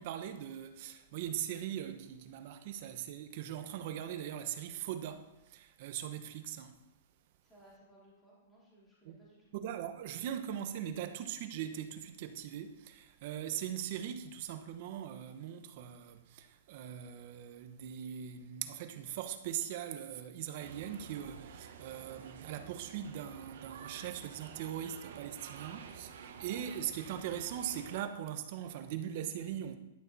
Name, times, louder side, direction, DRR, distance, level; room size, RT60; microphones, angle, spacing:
voice 1, 0.0-6.8 9.0-9.2 9.5-29.8, right 10 dB, 40° right, 1.0 m, -40 dB
voice 2, 7.4-9.5, right 1 dB, 5° left, 3.7 m, -61 dB
sound 1, 20.6-28.0, right 7 dB, 60° right, 1.4 m, -50 dB
11.5 x 11.5 x 4.2 m
hypercardioid pair, 175°, 0 cm